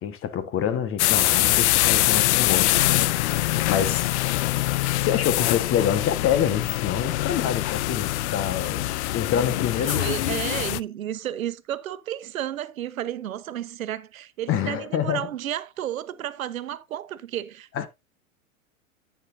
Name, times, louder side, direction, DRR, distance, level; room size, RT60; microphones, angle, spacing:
voice 1, 0.0-4.1 5.0-10.2 14.5-15.3 17.7-17.9, left 9 dB, 30° left, 1.5 m, -27 dB
sound 1, 1.0-10.8, left 16 dB, 55° left, 0.6 m, -24 dB
voice 2, 9.8-17.9, right 11 dB, 75° right, 1.0 m, -32 dB
11.5 x 8.6 x 2.7 m
hypercardioid pair, 100°, 42 cm